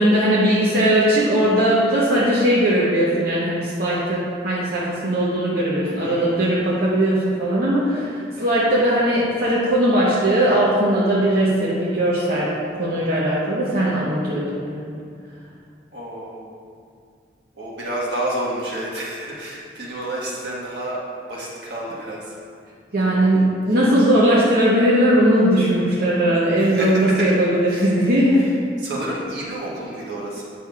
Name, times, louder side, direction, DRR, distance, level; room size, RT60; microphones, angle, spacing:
voice 1, 0.0-12.5 12.8-14.9 22.9-28.4, right 1 dB, 55° right, -8 dB, 0.9 m, -19 dB
voice 2, 5.9-6.5 15.9-16.4 17.5-21.0 21.3-22.3 23.0-23.5 26.6-27.3 27.7-27.9 28.3-28.4 28.8-30.4, right 1 dB, 80° right, -6 dB, 1.5 m, -30 dB
8.2 x 6.1 x 2.4 m, 2.2 s
head